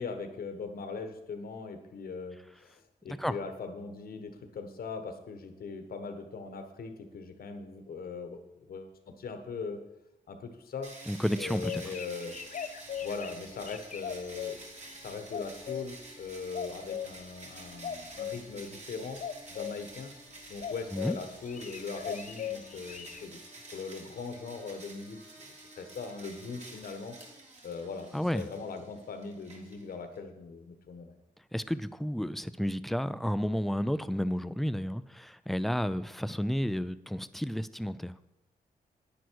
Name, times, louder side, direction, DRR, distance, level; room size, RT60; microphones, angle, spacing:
voice 1, 0.0-8.4 8.7-9.8 10.3-10.9 11.4-12.4 13.0-14.6 15.0-19.2 19.5-20.1 20.5-23.4 23.7-27.2 27.6-31.1, left 4 dB, 75° left, 7 dB, 1.4 m, -40 dB
sound 1, 10.8-30.2, right 2 dB, 50° right, 2.8 m, -50 dB
voice 2, 11.1-11.8 20.9-21.2 28.1-28.5 31.5-38.1, equal, ahead, 13 dB, 0.4 m, -31 dB
sound 2, 11.4-14.6 15.3-16.0 16.5-17.1 17.8-18.4 19.2-19.8 20.6-21.2 21.4-23.2, left 9 dB, 55° left, 0.6 m, -38 dB
10.5 x 9.5 x 4.7 m, 0.91 s
wide cardioid pair, 105°, 16 cm